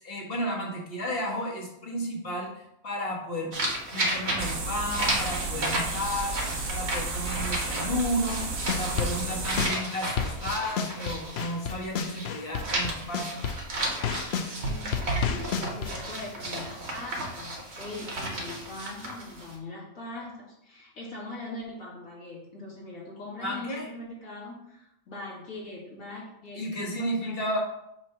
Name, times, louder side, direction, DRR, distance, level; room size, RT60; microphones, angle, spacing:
voice 1, 0.0-3.5 3.9-6.4 6.7-8.5 8.7-13.4 23.4-23.9 26.5-27.6, equal, 45° left, -2 dB, 1.6 m, -32 dB
sound 1, 3.5-12.3 12.5-19.6, right 1 dB, 50° right, 1.5 m, -33 dB
sound 2, 4.4-9.7, right 3 dB, 75° right, 1.6 m, -33 dB
sound 3, 8.4-14.5 14.9-16.2, left 7 dB, 60° left, 0.7 m, -30 dB
voice 2, 14.7-27.3, left 2 dB, 85° left, -5 dB, 2.3 m, -41 dB
6.0 x 3.2 x 5.7 m, 0.81 s
omnidirectional pair, 1.4 m